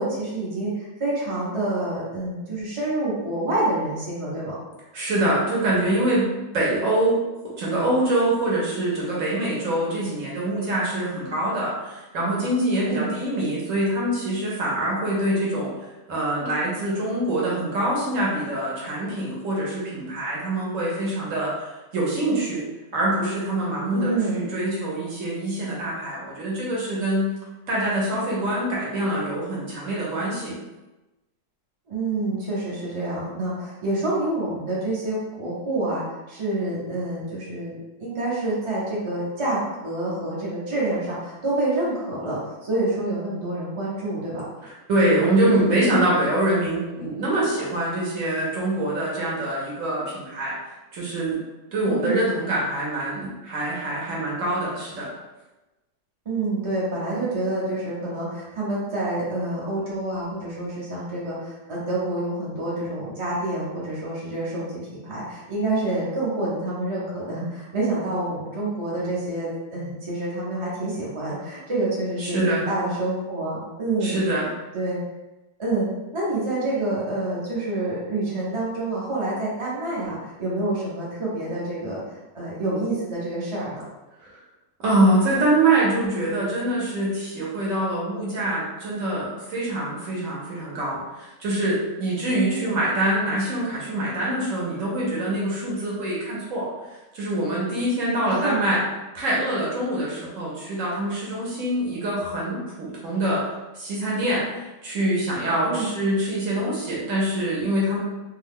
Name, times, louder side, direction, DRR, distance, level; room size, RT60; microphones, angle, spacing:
voice 1, 0.0-4.5 12.8-13.1 23.9-24.4 31.9-37.7 38.0-44.4 51.8-52.2 56.2-74.1 74.7-75.0 75.6-75.9 76.1-82.0 82.3-83.8 92.4-92.7 98.2-98.6 105.6-105.9, right 2 dB, 35° right, -7 dB, 0.5 m, -27 dB
voice 2, 4.9-6.3 6.5-7.2 7.4-15.7 16.1-22.6 22.9-27.3 27.7-30.6 44.6-50.5 50.9-51.4 51.7-55.1 72.2-72.7 74.0-74.5 84.2-84.4 84.8-98.8 99.1-103.4 103.7-108.0, right 1 dB, 60° right, -5 dB, 1.0 m, -24 dB
2.8 x 2.3 x 3.5 m, 1.1 s
omnidirectional pair, 1.8 m